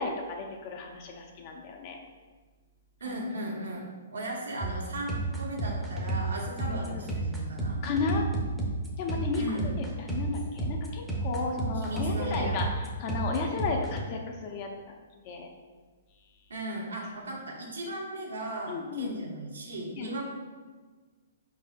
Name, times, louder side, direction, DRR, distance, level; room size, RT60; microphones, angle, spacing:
voice 1, 0.0-2.0 3.0-3.2 4.2-4.3 6.7-7.1 7.8-8.2 9.0-14.7 15.2-15.5 17.2-17.3 18.7-19.1 20.0-20.1, left 4 dB, 45° left, 2 dB, 0.7 m, -34 dB
voice 2, 3.0-7.8 9.3-9.7 11.8-12.6 16.5-20.2, right 1 dB, 85° right, -2 dB, 1.1 m, -37 dB
sound 1, 4.6-14.0, right 3 dB, 5° right, 0.7 m, -31 dB
4.9 x 4.1 x 2.4 m, 1.4 s
hypercardioid pair, 130°, 0 cm